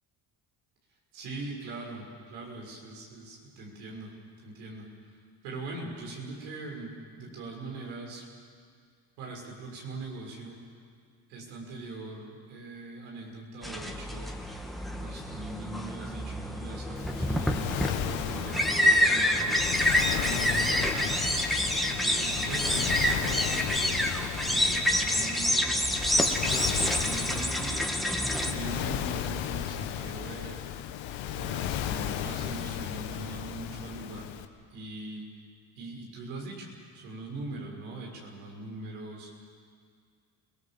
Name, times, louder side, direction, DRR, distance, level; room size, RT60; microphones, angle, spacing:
voice 1, 1.1-8.2 9.2-10.6 11.3-14.3 15.0-21.2 21.9-23.9 24.4-27.8 28.5-30.6 31.3-34.3 34.7-35.2 35.7-39.5, right 2 dB, 80° right, -1 dB, 6.6 m, -41 dB
sound 1, 13.6-28.5, left 1 dB, ahead, 2.5 m, -27 dB
Waves surf, 17.0-34.5, left 10 dB, 70° left, 1.7 m, -35 dB
29.5 x 19.0 x 7.7 m, 2.1 s
supercardioid pair, 70°, 48 cm